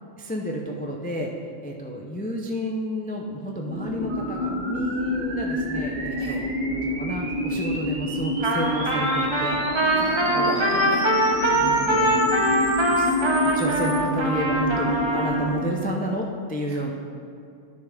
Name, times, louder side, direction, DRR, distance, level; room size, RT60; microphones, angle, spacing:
voice 1, 0.2-1.3 1.6-9.6 10.3-10.6 11.5-12.6 12.9-13.2 13.5-16.9, equal, 15° left, 0 dB, 0.3 m, -31 dB
sound 1, 3.7-15.5, left 1 dB, 65° left, 2.6 m, -29 dB
sound 2, 4.1-14.0, right 2 dB, 90° right, 1.8 m, -38 dB
voice 2, 6.1-6.4 9.9-11.0 16.7-16.9, right 1 dB, 50° right, -2 dB, 1.4 m, -34 dB
Trumpet, 8.4-15.5, right 1 dB, 25° right, 0.7 m, -23 dB
11.0 x 6.6 x 3.5 m, 2.5 s
omnidirectional pair, 1.3 m